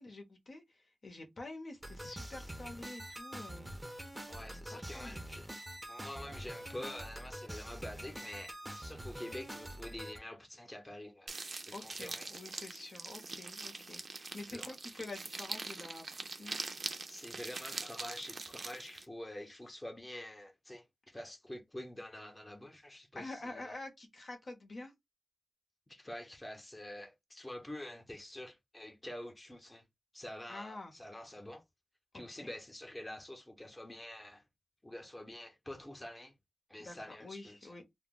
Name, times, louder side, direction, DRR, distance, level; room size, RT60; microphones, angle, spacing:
voice 1, 0.0-3.8 4.5-5.2 11.7-16.6 23.1-24.9 30.5-30.9 32.1-32.5 36.8-37.8, left 2 dB, 60° left, 0.8 m, -48 dB
sound 1, 1.8-10.2, right 1 dB, 10° right, 0.6 m, -45 dB
voice 2, 4.3-5.5 5.9-12.3 14.5-14.7 17.1-23.7 25.9-29.8 30.1-31.6 32.1-34.4 34.8-36.3 36.7-37.7, left 1 dB, 20° left, 0.7 m, -47 dB
sound 2, 11.3-19.1, right 3 dB, 55° right, 0.5 m, -43 dB
2.2 x 2.0 x 3.6 m
wide cardioid pair, 70°, 0 cm